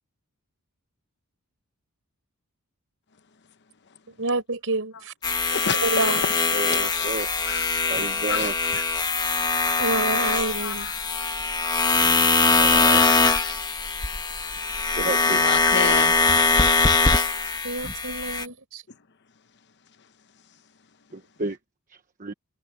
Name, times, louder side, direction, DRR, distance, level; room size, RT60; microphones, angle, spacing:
voice 1, 4.1-5.1 5.8-6.3 9.8-10.9 17.6-18.8, right 3 dB, 65° right, 5.2 m, -28 dB
sound 1, 5.2-18.5, left 3 dB, 20° left, 1.3 m, -22 dB
voice 2, 5.5-6.3 6.9-7.7 8.0-8.8 10.3-10.9 12.9-13.4 15.3-16.1 17.3-17.5, left 7 dB, 50° left, 0.9 m, -32 dB
voice 3, 6.5-7.3 7.9-8.5 12.5-13.0 15.0-15.4 21.1-21.6 22.2-22.3, right 3 dB, 35° right, 1.1 m, -31 dB
head